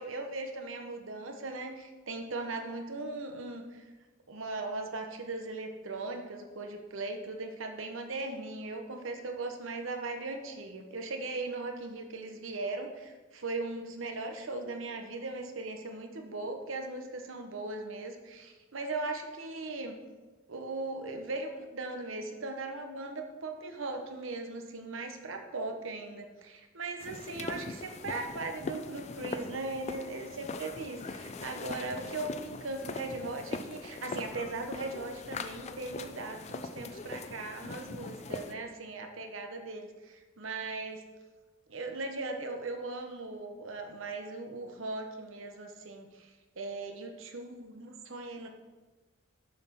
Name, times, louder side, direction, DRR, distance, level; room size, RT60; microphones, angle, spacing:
voice 1, 0.0-3.8 4.3-20.0 20.5-41.0 41.7-46.3 46.6-48.5, right 3 dB, 75° right, 4 dB, 0.9 m, -38 dB
sound 1, 27.0-38.5, left 3 dB, 35° left, 0.4 m, -41 dB
6.9 x 4.3 x 5.8 m, 1.2 s
head